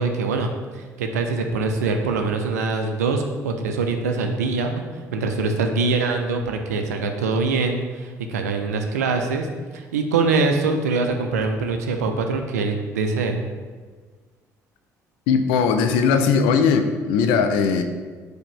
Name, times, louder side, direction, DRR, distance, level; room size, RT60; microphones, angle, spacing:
voice 1, 0.0-9.5 9.7-13.4, right 4 dB, 75° right, 5 dB, 0.4 m, -23 dB
voice 2, 15.3-17.8, left 6 dB, 65° left, 8 dB, 0.4 m, -19 dB
4.8 x 2.1 x 4.7 m, 1.4 s
figure-of-eight pair, 50°, 9 cm